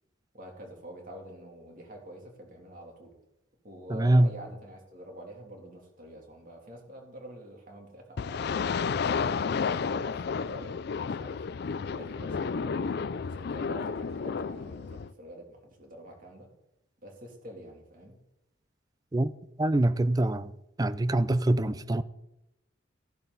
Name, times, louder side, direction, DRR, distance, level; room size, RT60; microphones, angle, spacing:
voice 1, 0.3-3.1 3.6-10.2 10.4-11.4 11.9-16.5 17.0-18.2, right 1 dB, 45° right, 3.0 m, -47 dB
voice 2, 3.9-4.3 19.1-19.3 19.6-20.5 20.8-22.0, right 1 dB, 20° right, 0.4 m, -24 dB
sound 1, 8.2-15.1, left 5 dB, 50° left, 0.4 m, -31 dB
14.5 x 11.0 x 4.0 m
head